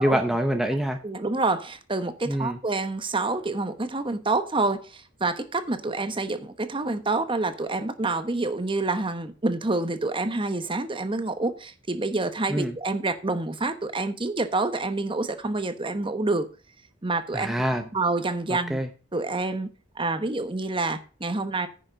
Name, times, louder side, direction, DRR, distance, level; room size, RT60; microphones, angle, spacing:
voice 1, 0.0-1.0 2.3-2.6 12.5-12.8 17.3-17.8 18.7-18.9, equal, ahead, 0.8 m, -25 dB
voice 2, 1.0-16.5 17.0-17.5 17.9-18.8 19.1-19.7 20.0-21.7, right 3 dB, 25° right, 1.0 m, -27 dB
10.0 x 6.4 x 5.2 m
head